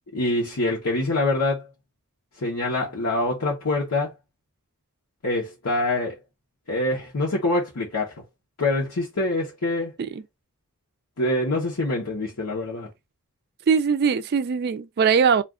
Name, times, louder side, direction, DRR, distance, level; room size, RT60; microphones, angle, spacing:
voice 1, 0.1-1.7 2.4-4.1 5.2-6.2 6.7-8.1 8.6-9.9 11.2-12.9, left 2 dB, 85° left, 0.9 m, -25 dB
voice 2, 13.7-15.4, right 6 dB, 45° right, 0.3 m, -21 dB
2.4 x 2.4 x 3.6 m
head